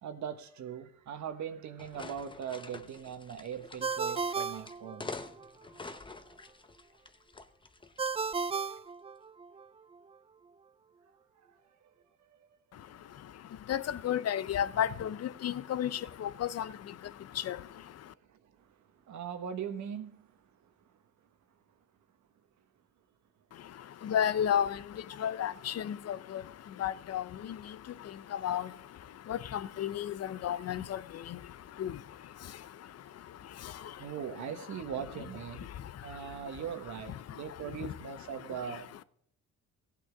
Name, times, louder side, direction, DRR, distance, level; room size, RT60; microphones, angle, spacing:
voice 1, 0.0-5.1 12.2-12.5 18.3-20.5 34.0-35.7 36.0-39.0, right 8 dB, 70° right, 1.5 m, -40 dB
sound 1, 1.8-8.8, left 3 dB, 15° left, 0.9 m, -47 dB
Ringtone, 3.8-5.5 8.0-9.7, right 5 dB, 20° right, 0.3 m, -34 dB
voice 2, 13.7-15.1 15.4-16.7 17.5-17.6 24.0-24.8 25.2-26.2 26.8-27.2 28.4-28.6 29.3-30.1 30.4-31.0 31.8-31.9, left 9 dB, 55° left, 0.7 m, -31 dB
16.0 x 8.5 x 3.5 m
cardioid pair, 90°, 30 cm